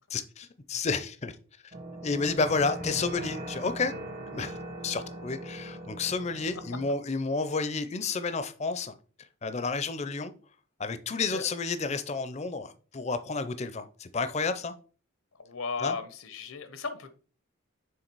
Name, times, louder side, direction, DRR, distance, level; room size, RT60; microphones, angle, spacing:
voice 1, 0.1-1.4 2.0-3.9 4.3-4.5 4.8-8.9 9.4-10.3 10.8-14.7 15.8-15.9, left 4 dB, 30° left, 0.5 m, -31 dB
sound 1, 1.7-6.9, right 1 dB, 45° right, 0.9 m, -40 dB
voice 2, 15.4-17.1, left 4 dB, 80° left, 0.8 m, -35 dB
6.4 x 3.6 x 4.6 m
head